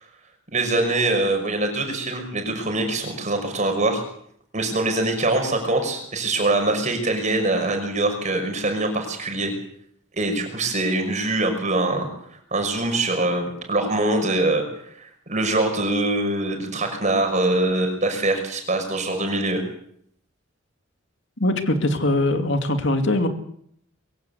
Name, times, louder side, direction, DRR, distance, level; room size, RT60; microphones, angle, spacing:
voice 1, 0.5-4.0 4.5-9.5 10.1-12.1 12.5-19.6, right 2 dB, 35° right, 4 dB, 5.8 m, -23 dB
voice 2, 21.4-23.3, left 1 dB, 60° left, 7 dB, 2.6 m, -21 dB
23.0 x 16.5 x 8.2 m, 0.67 s
head